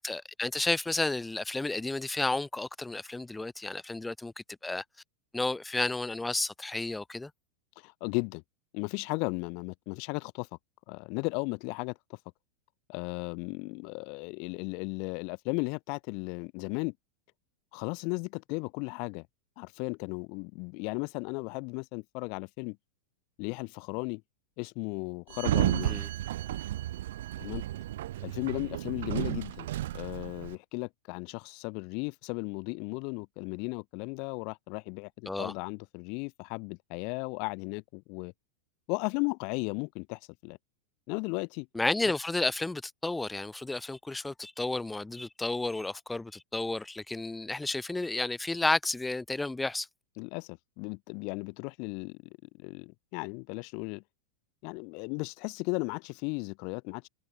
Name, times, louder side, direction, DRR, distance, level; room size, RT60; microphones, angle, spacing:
voice 1, 0.0-4.8 5.3-7.3 25.9-26.1 35.3-35.5 41.7-49.9, left 2 dB, 5° left, 0.7 m, -32 dB
voice 2, 7.8-8.4 8.7-10.5 10.9-12.2 12.9-16.9 17.7-19.3 19.6-22.8 23.4-24.2 24.6-25.9 27.4-27.6 28.2-29.7 29.9-38.3 38.9-40.6 41.1-41.7 50.2-54.0 54.6-57.1, left 34 dB, 45° left, 0.9 m, -35 dB
Sliding door, 25.3-30.5, right 14 dB, 55° right, 1.0 m, -32 dB
figure-of-eight pair, 90°, 0 cm